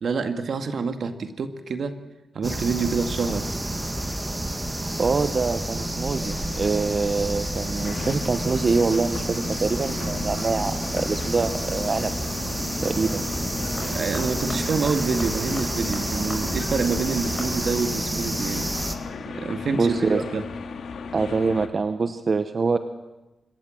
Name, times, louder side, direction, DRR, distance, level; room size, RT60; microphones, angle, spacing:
voice 1, 0.0-2.0 2.4-3.5 13.8-18.7 19.3-20.4, right 5 dB, 65° right, 9 dB, 1.9 m, -27 dB
sound 1, 2.4-18.9, right 1 dB, 15° right, 2.0 m, -29 dB
voice 2, 4.8-12.1 12.8-13.3 19.7-20.2 21.1-22.8, right 4 dB, 45° right, 10 dB, 1.0 m, -25 dB
sound 2, 5.4-21.7, left 5 dB, 85° left, 2.0 m, -36 dB
sound 3, 11.4-11.7 13.7-16.4 16.7-16.8 17.4-17.5, left 4 dB, 45° left, 5.4 m, -39 dB
25.5 x 21.0 x 7.7 m, 1.1 s
wide cardioid pair, 105°, 0 cm